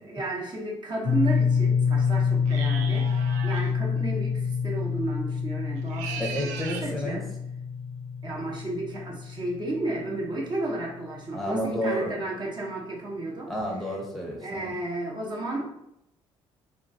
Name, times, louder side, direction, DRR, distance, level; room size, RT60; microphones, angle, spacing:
voice 1, 0.0-6.5 6.8-7.2 8.2-13.5 14.4-15.7, right 2 dB, 40° right, -2 dB, 0.8 m, -33 dB
sound 1, 1.0-11.0, left 6 dB, 55° left, 0.6 m, -27 dB
sound 2, 2.4-3.7 5.8-6.9, right 6 dB, 85° right, 0.4 m, -38 dB
voice 2, 6.2-7.2 11.3-12.1 13.5-14.7, equal, ahead, -2 dB, 0.8 m, -30 dB
3.0 x 2.3 x 2.6 m, 0.80 s
supercardioid pair, 75°, 12 cm